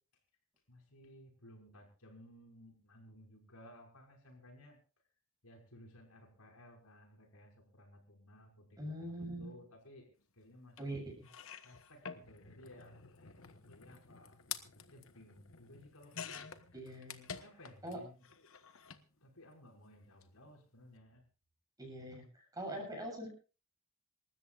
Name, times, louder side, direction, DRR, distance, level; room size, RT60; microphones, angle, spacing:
voice 1, 0.7-4.8 5.4-11.0 11.6-16.5 17.4-18.5 19.1-21.2, left 1 dB, 90° left, 1 dB, 5.7 m, -58 dB
voice 2, 8.8-9.6 10.8-11.3 16.7-17.3 17.8-18.0 21.8-23.3, right 1 dB, 15° right, 1 dB, 7.4 m, -43 dB
sound 1, 10.8-10.9 11.2-18.0 18.2-19.0 20.1-20.2 20.5-20.6, left 7 dB, 65° left, 1.2 m, -49 dB
27.5 x 13.5 x 2.5 m, 0.35 s
head